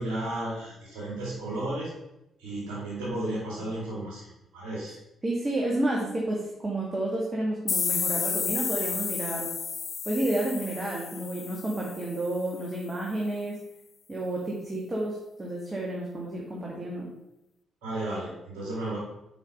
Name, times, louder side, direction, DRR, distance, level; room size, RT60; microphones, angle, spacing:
voice 1, 0.0-1.9 2.4-5.0 17.8-19.0, right 1 dB, 65° right, -6 dB, 2.6 m, -33 dB
voice 2, 5.2-9.5 10.1-13.6 14.1-17.1, right 1 dB, 30° right, -3 dB, 1.9 m, -30 dB
sound 1, 7.7-12.3, left 6 dB, 50° left, 0.4 m, -32 dB
7.3 x 4.9 x 5.5 m, 0.88 s
hypercardioid pair, 45°, 0 cm